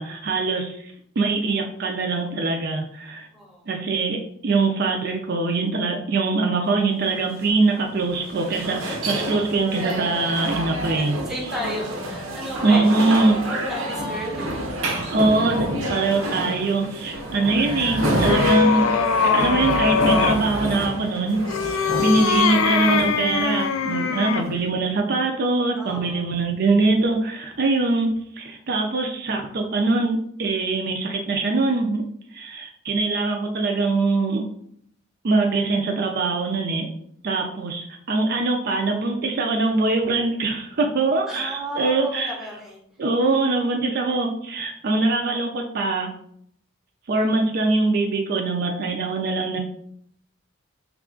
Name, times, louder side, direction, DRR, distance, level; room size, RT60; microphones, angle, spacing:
voice 1, 0.0-3.3 3.7-11.2 12.6-13.4 15.1-15.6 15.9-28.1 28.4-32.0 32.3-34.4 35.2-36.9 37.2-42.4 43.0-46.1 47.1-49.6, right 3 dB, 50° right, 2 dB, 0.4 m, -23 dB
voice 2, 3.3-3.7 11.0-12.9 13.4-14.8 21.9-22.1 25.8-26.3 41.3-42.8, equal, ahead, -2 dB, 0.6 m, -34 dB
sound 1, 7.0-24.1, right 1 dB, 85° right, 0.7 m, -28 dB
sound 2, 17.5-20.5 21.4-24.6, left 6 dB, 80° left, 0.4 m, -22 dB
3.2 x 2.4 x 3.7 m, 0.68 s
head